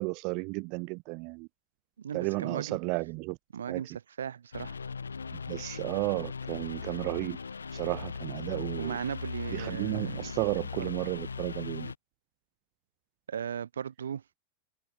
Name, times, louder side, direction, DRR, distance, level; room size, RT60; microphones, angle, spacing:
voice 1, 0.0-1.5 2.1-3.4 3.7-3.8 5.3-7.4 7.7-9.0 9.5-11.9, right 31 dB, 45° right, 3.2 m, -33 dB
voice 2, 2.0-2.8 3.5-4.8 8.8-10.3 10.8-10.9 13.3-14.4, right 8 dB, 65° right, 4.7 m, -37 dB
sound 1, 4.5-12.0, left 5 dB, 75° left, 3.6 m, -39 dB
figure-of-eight pair, 90°, 0 cm